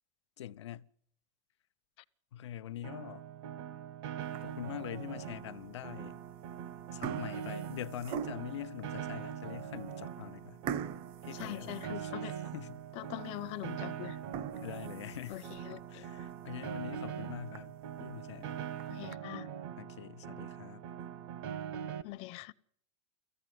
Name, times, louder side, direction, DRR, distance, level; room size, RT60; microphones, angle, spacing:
voice 1, 0.4-0.9 2.3-3.2 4.4-6.2 6.9-10.6 11.2-12.1 12.5-12.8 14.6-18.7 19.8-20.8, left 11 dB, 90° left, 0.8 m, -44 dB
Piano, 2.8-22.0, right 9 dB, 60° right, 1.3 m, -42 dB
sound 1, 4.2-4.7 5.3-5.4 6.3-6.5 6.8-8.7 9.3-9.4 9.7-9.9 10.7-12.4 12.8-12.9 13.4-13.5 14.1-15.7 16.2-16.3 16.7-16.8 17.1-17.2 17.5-17.6 18.5-19.1, right 8 dB, 40° right, 0.8 m, -42 dB
voice 2, 11.3-12.3 13.0-14.2 15.3-16.0 18.9-19.5 22.0-22.5, left 18 dB, 45° left, 0.7 m, -42 dB
18.5 x 15.0 x 9.4 m
supercardioid pair, 135°, 14 cm